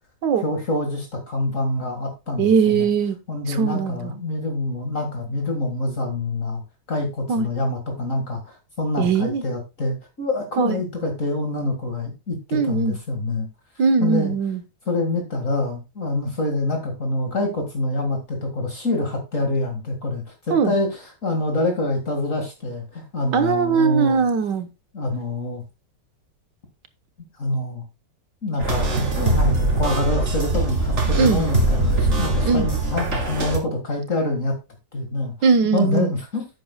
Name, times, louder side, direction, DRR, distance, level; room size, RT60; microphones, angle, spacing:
voice 1, 0.4-2.9 3.3-6.6 6.9-13.5 14.0-14.3 14.9-24.2 24.9-25.6 27.4-27.8 28.4-34.5 34.9-35.3 35.7-36.5, left 2 dB, 45° left, 2.3 m, -26 dB
voice 2, 2.4-3.2 3.5-4.1 7.3-7.5 9.0-9.4 10.6-10.8 12.5-13.0 13.8-14.6 20.5-20.7 23.3-24.7 31.2-31.4 32.4-32.7 35.4-36.1, right 5 dB, 80° right, 1.8 m, -20 dB
sound 1, 28.6-33.6, right 2 dB, 40° right, 2.3 m, -22 dB
11.0 x 8.5 x 2.3 m
omnidirectional pair, 1.9 m